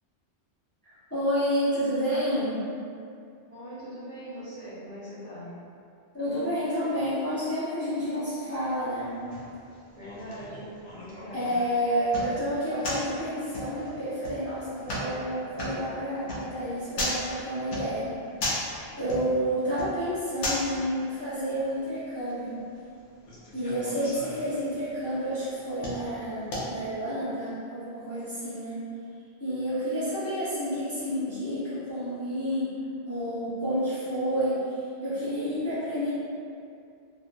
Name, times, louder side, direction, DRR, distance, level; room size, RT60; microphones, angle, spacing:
voice 1, 1.1-2.6 6.1-9.2 11.3-18.1 19.0-22.6 23.5-28.9 29.4-32.7 33.0-36.1, equal, 15° left, -14 dB, 0.6 m, -29 dB
voice 2, 3.5-5.5 9.9-11.5, equal, 45° right, -13 dB, 0.6 m, -41 dB
sound 1, 8.5-27.1, left 1 dB, 80° left, 0.9 m, -38 dB
2.6 x 2.4 x 2.2 m, 2.5 s
omnidirectional pair, 1.2 m